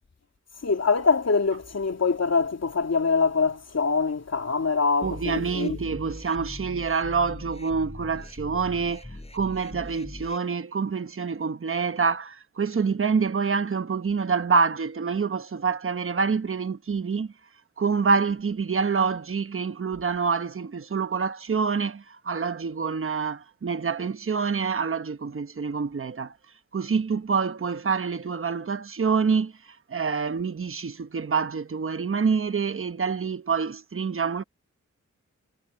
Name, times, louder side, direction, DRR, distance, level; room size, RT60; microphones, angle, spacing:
voice 1, 0.6-5.8, left 4 dB, 55° left, 3.3 m, -24 dB
sound 1, 5.0-10.4, left 1 dB, 20° left, 7.2 m, -40 dB
voice 2, 5.0-9.1 9.3-17.3 17.8-26.3 26.7-29.5 29.9-34.4, right 5 dB, 45° right, 1.1 m, -26 dB
cardioid pair, 60°, 30 cm